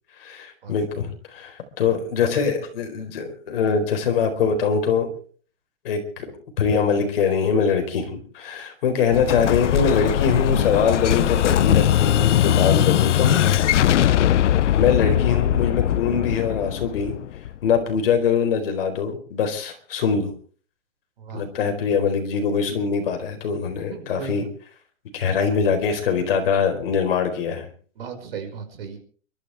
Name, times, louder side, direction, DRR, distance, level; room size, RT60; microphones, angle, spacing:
voice 1, 0.2-5.1 5.8-13.6 14.7-17.1 17.6-20.3 21.3-24.4 25.1-27.7, left 6 dB, 50° left, 5 dB, 4.2 m, -23 dB
Explosion, 9.1-17.8, left 11 dB, 70° left, 0.7 m, -20 dB
voice 2, 23.9-24.4 28.0-29.0, right 7 dB, 50° right, 5 dB, 5.4 m, -35 dB
29.5 x 13.0 x 3.4 m, 0.43 s
hypercardioid pair, 175°, 37 cm